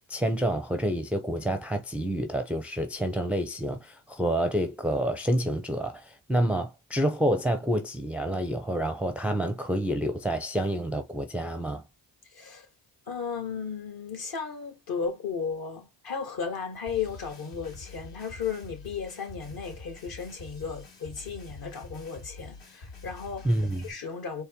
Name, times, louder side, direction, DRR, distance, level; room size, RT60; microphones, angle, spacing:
voice 1, 0.1-11.8 23.4-23.9, right 1 dB, 5° right, 0.5 m, -28 dB
voice 2, 12.3-12.7 13.1-23.5 23.8-24.4, left 6 dB, 50° left, 1.7 m, -35 dB
sound 1, 16.9-23.9, left 3 dB, 65° left, 2.7 m, -46 dB
4.2 x 2.2 x 3.6 m
cardioid pair, 85°, 46 cm